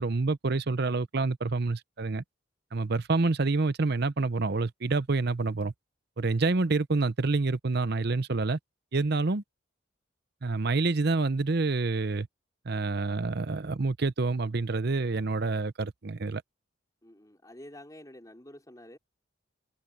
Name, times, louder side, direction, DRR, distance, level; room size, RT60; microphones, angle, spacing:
voice 1, 0.0-2.2 2.7-5.7 6.2-8.6 8.9-9.4 10.4-12.3 12.6-16.4, right 3 dB, 55° right, 0.7 m, -27 dB
voice 2, 17.0-19.0, left 1 dB, 20° left, 4.2 m, -49 dB
head